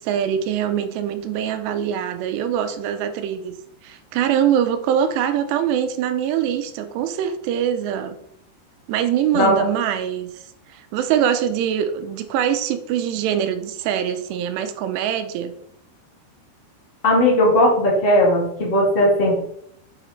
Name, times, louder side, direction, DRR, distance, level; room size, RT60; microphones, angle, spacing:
voice 1, 0.0-3.5 3.8-8.2 8.9-10.4 10.7-15.5, right 9 dB, 90° right, 9 dB, 2.8 m, -23 dB
voice 2, 17.0-19.4, left 1 dB, 20° left, -3 dB, 1.6 m, -17 dB
8.0 x 5.0 x 4.2 m, 0.70 s
omnidirectional pair, 4.9 m